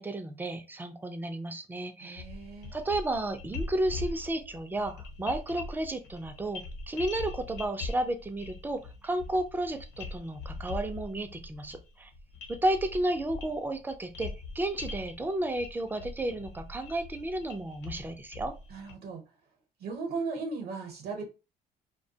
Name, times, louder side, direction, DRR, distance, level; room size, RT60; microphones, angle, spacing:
voice 1, 0.0-2.2 2.7-12.1 12.5-18.5, right 1 dB, 10° right, 7 dB, 0.4 m, -32 dB
voice 2, 2.0-2.7 18.7-19.2 19.8-21.3, right 4 dB, 65° right, 3 dB, 0.8 m, -37 dB
sound 1, 2.2-18.9, left 3 dB, 80° left, 0.8 m, -42 dB
2.3 x 2.2 x 2.7 m, 0.29 s
cardioid pair, 110°, 17 cm